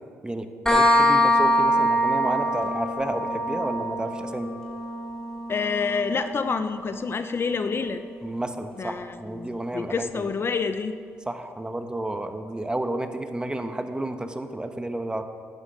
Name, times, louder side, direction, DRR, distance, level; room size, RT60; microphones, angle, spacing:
voice 1, 0.2-4.5 8.2-10.3 11.3-15.2, right 1 dB, 15° right, 7 dB, 1.0 m, -31 dB
sound 1, 0.7-8.1, equal, 10° left, 2.6 m, -24 dB
voice 2, 5.5-8.0 8.8-11.0, left 5 dB, 45° left, 10 dB, 0.6 m, -28 dB
11.5 x 9.8 x 5.2 m, 2.2 s
supercardioid pair, 65°, 6 cm